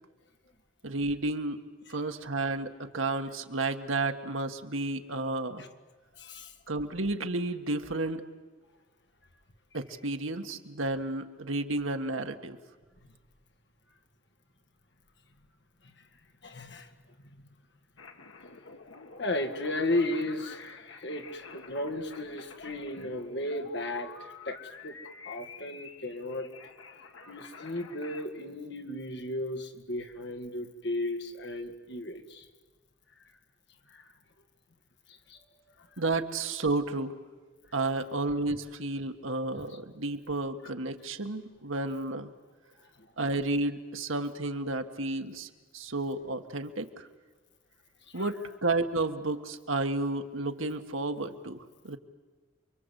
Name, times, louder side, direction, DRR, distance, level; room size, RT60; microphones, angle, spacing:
voice 1, 0.8-1.6 1.9-5.6 6.7-8.2 9.7-12.6 36.0-37.2 37.7-42.3 43.2-47.1 48.1-52.0, right 2 dB, 80° right, 7 dB, 1.6 m, -32 dB
voice 2, 6.2-6.5 16.4-16.9 19.2-25.0 25.2-26.5 27.3-32.5 33.9-34.0 35.1-35.4 35.8-35.9 48.1-48.3, left 1 dB, 55° left, 5 dB, 2.2 m, -35 dB
sound 1, 18.0-28.3, left 4 dB, 80° left, 1.9 m, -49 dB
29.0 x 24.0 x 8.3 m, 1.4 s
head